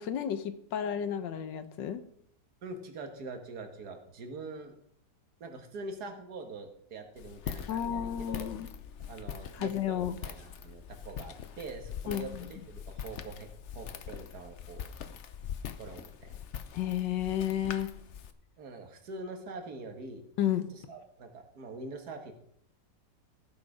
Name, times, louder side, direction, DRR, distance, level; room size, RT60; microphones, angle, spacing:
voice 1, 0.0-2.0 7.7-8.7 9.5-10.2 12.1-12.5 16.7-17.9 20.4-20.7, left 10 dB, 85° left, 11 dB, 1.6 m, -32 dB
voice 2, 2.6-4.7 5.4-8.5 9.0-13.5 13.7-14.9 15.8-16.4 18.6-20.2 20.7-22.3, right 3 dB, 60° right, 5 dB, 2.0 m, -44 dB
Walk footsteps, 7.2-18.3, left 8 dB, 60° left, 0.8 m, -43 dB
15.0 x 6.4 x 4.9 m, 0.70 s
omnidirectional pair, 1.9 m